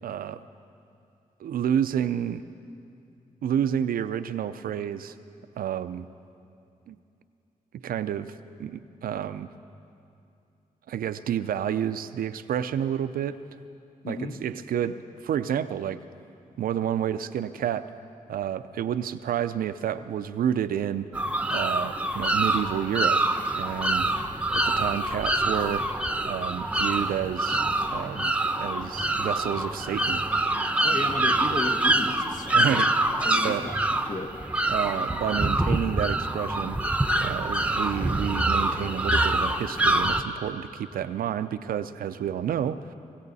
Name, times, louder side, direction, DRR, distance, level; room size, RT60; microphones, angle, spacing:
voice 1, 0.0-0.4 1.4-2.4 3.4-5.1 5.6-6.1 6.9-7.0 7.7-8.3 8.6-9.5 10.9-13.4 14.1-16.0 16.6-17.9 18.3-21.1 21.5-23.2 23.5-24.1 24.5-25.9 26.3-27.7 27.9-28.3 28.6-30.2 32.5-32.9 33.4-33.7 34.7-36.8 37.2-42.9, right 9 dB, 85° right, 12 dB, 0.5 m, -29 dB
voice 2, 14.0-14.4 30.8-32.8 33.2-34.3, left 2 dB, 65° left, 3 dB, 1.6 m, -34 dB
sound 1, 21.1-40.2, right 1 dB, 10° right, 0.8 m, -25 dB
20.0 x 16.5 x 4.1 m, 2.6 s
cardioid pair, 60°, 14 cm